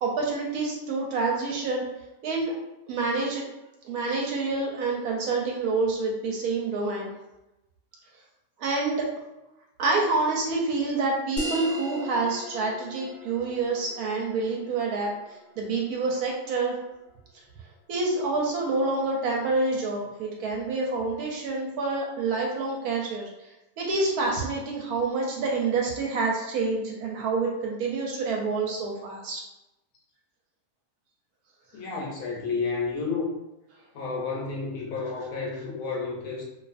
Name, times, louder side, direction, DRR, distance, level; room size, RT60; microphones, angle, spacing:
voice 1, 0.0-1.8 2.2-2.5 2.9-3.4 3.8-7.1 8.6-9.1 9.8-16.8 17.9-23.3 23.8-29.4, right 3 dB, 70° right, -1 dB, 1.0 m, -27 dB
sound 1, 11.4-16.4, left 1 dB, 10° right, 0.8 m, -38 dB
voice 2, 31.7-33.3 33.9-36.4, left 4 dB, 70° left, -2 dB, 1.0 m, -31 dB
2.5 x 2.4 x 2.4 m, 0.97 s
omnidirectional pair, 1.7 m